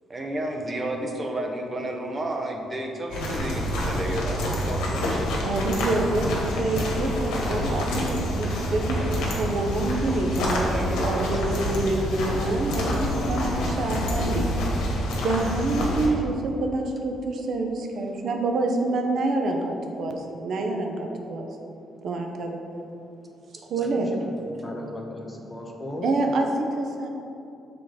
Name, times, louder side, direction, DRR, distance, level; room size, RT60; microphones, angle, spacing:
voice 1, 0.1-5.5 10.5-11.4, right 1 dB, 30° right, 2 dB, 0.8 m, -31 dB
sound 1, 3.1-16.1, left 1 dB, 85° left, 1.2 m, -27 dB
voice 2, 5.4-10.7 11.0-14.5 15.2-21.5 22.0-22.6 23.7-24.1 26.0-27.1, right 2 dB, 65° right, 3 dB, 0.7 m, -27 dB
voice 3, 23.8-26.1, left 1 dB, 20° left, 1 dB, 0.9 m, -37 dB
5.9 x 3.8 x 5.0 m, 2.7 s
cardioid pair, 90°, 0 cm